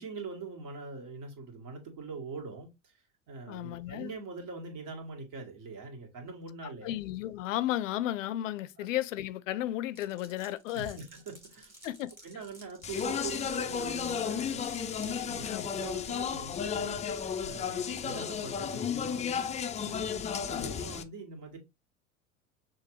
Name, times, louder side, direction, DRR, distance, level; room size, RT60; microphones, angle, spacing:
voice 1, 0.0-2.9 3.3-7.0 8.8-8.9 10.7-11.8 12.2-17.0 17.4-19.3 19.8-21.6, right 4 dB, 50° right, 1.9 m, -43 dB
voice 2, 3.5-4.1 6.8-11.0 11.8-12.1 15.4-15.6, left 13 dB, 70° left, 0.6 m, -33 dB
Glass, 9.9-15.2, right 1 dB, 5° right, 1.8 m, -54 dB
Speech, 12.8-21.0, left 7 dB, 20° left, 0.4 m, -33 dB
6.1 x 2.6 x 3.1 m
hypercardioid pair, 75°, 39 cm